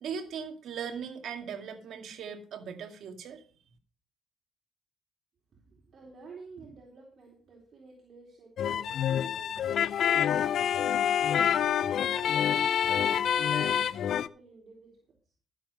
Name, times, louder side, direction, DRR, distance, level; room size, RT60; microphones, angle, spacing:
voice 1, 0.0-3.4, right 7 dB, 70° right, 5 dB, 2.2 m, -39 dB
voice 2, 5.5-11.2 12.2-15.0, right 4 dB, 50° right, -2 dB, 3.9 m, -51 dB
sound 1, 8.6-14.3, left 9 dB, 65° left, 0.5 m, -27 dB
13.0 x 7.5 x 5.5 m, 0.42 s
cardioid pair, 90°, 0 cm